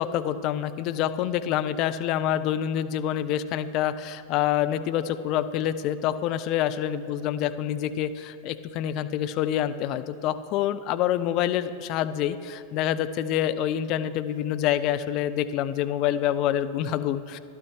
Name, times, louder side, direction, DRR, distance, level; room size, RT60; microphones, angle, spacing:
voice 1, 0.0-17.4, left 11 dB, 40° left, 12 dB, 0.4 m, -27 dB
12.5 x 11.5 x 3.2 m, 2.6 s
figure-of-eight pair, 90°, 0 cm